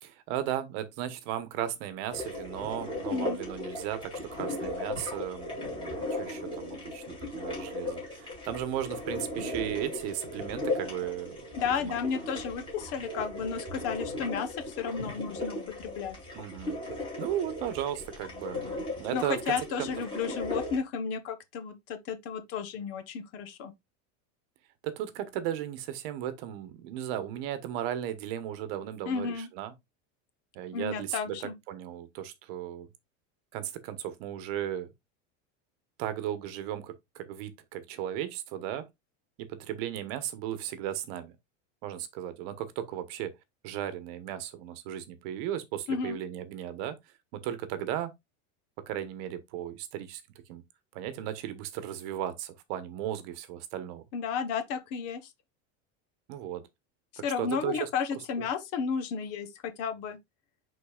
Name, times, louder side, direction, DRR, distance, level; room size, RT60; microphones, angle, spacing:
voice 1, 0.0-11.4 11.8-12.0 16.3-16.8 17.2-18.6 19.0-19.9 24.8-29.7 30.5-32.9 33.5-34.9 36.0-38.9 39.4-41.4 41.8-43.3 43.6-47.0 47.3-48.1 48.8-50.2 50.5-50.6 50.9-54.0 56.3-56.7 57.2-57.9 58.4-58.5, right 11 dB, 50° right, 1.1 m, -36 dB
sound 1, 2.1-20.8, left 2 dB, 15° left, 4.1 m, -37 dB
voice 2, 11.6-16.2 19.1-23.7 29.1-29.5 30.7-31.6 45.9-46.2 54.1-55.3 57.2-60.2, left 6 dB, 40° left, 1.0 m, -33 dB
10.5 x 4.1 x 2.3 m
supercardioid pair, 170°, 38 cm